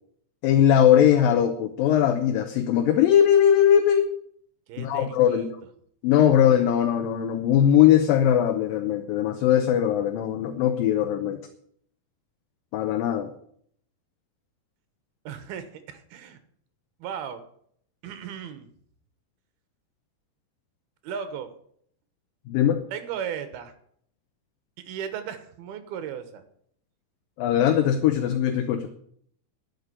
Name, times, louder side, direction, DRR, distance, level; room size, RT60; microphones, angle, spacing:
voice 1, 0.4-4.1 4.8-5.5 6.0-11.4 12.7-13.3 22.5-22.8 27.4-28.9, left 10 dB, 75° left, 7 dB, 2.3 m, -20 dB
voice 2, 4.7-5.5 15.2-16.4 17.0-17.4 18.0-18.7 21.0-21.5 22.9-23.7 24.8-26.4, right 8 dB, 75° right, 10 dB, 3.1 m, -36 dB
11.5 x 6.8 x 9.7 m, 0.65 s
omnidirectional pair, 4.7 m